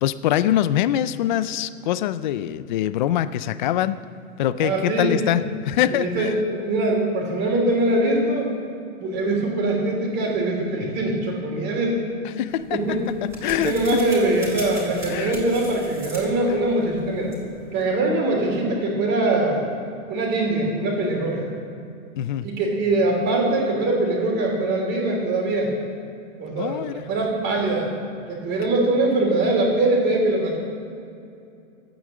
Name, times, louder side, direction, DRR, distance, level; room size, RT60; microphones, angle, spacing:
voice 1, 0.0-4.0 4.4-6.3 12.4-12.8 13.2-14.0 15.1-15.4 22.2-22.5 26.6-27.0, left 12 dB, 40° left, 14 dB, 0.4 m, -24 dB
voice 2, 4.6-5.4 5.9-8.5 9.0-12.0 12.7-13.0 13.6-17.3 17.7-19.7 20.1-21.5 22.4-25.7 26.4-27.9 28.3-30.6, right 2 dB, 25° right, -1 dB, 3.3 m, -22 dB
sound 1, 12.5-17.9, equal, 5° right, 3.5 m, -40 dB
13.5 x 9.2 x 7.6 m, 2.6 s
hypercardioid pair, 155°, 40 cm